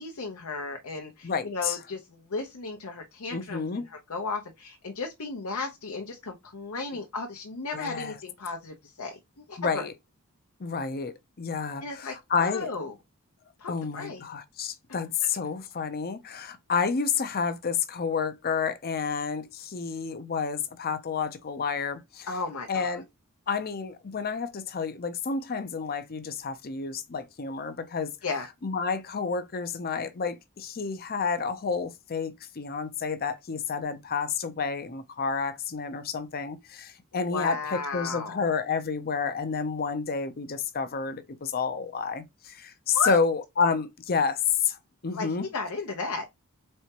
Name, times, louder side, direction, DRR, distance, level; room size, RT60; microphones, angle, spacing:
voice 1, 0.0-9.9 11.8-12.9 13.6-14.2 22.3-23.0 28.2-28.5 37.3-38.5 42.9-43.2 45.1-46.2, left 4 dB, 75° left, 0.8 m, -34 dB
voice 2, 1.2-1.8 3.3-3.8 7.7-8.2 9.6-9.9 10.6-12.7 13.7-22.3 22.7-23.0 23.5-28.1 28.6-44.4 44.7-44.8 45.0-45.5, left 5 dB, 45° left, 0.6 m, -30 dB
4.4 x 3.4 x 2.9 m
head